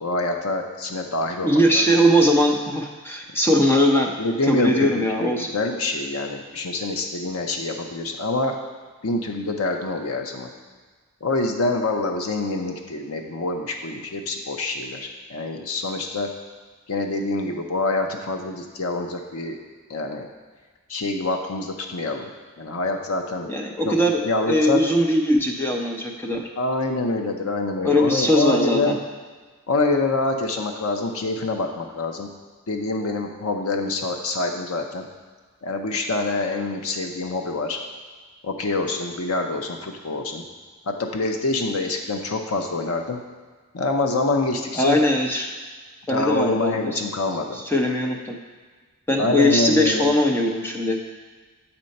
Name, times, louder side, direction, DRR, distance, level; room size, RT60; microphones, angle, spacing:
voice 1, 0.0-1.8 4.2-8.6 9.0-10.5 11.2-16.3 16.9-19.6 19.9-20.3 20.9-22.3 22.6-23.5 23.8-23.9 24.2-24.8 26.6-29.0 29.7-32.3 32.7-35.1 35.6-37.8 38.4-40.4 40.9-43.2 43.7-45.0 46.1-47.6 49.2-50.1, left 2 dB, 85° left, 3 dB, 0.7 m, -26 dB
voice 2, 1.4-4.1 4.4-5.5 23.5-26.5 27.8-29.0 44.8-45.5 46.1-47.0 47.5-48.4 49.1-51.0, equal, 10° left, 1 dB, 0.6 m, -20 dB
7.4 x 4.4 x 5.3 m, 1.4 s
head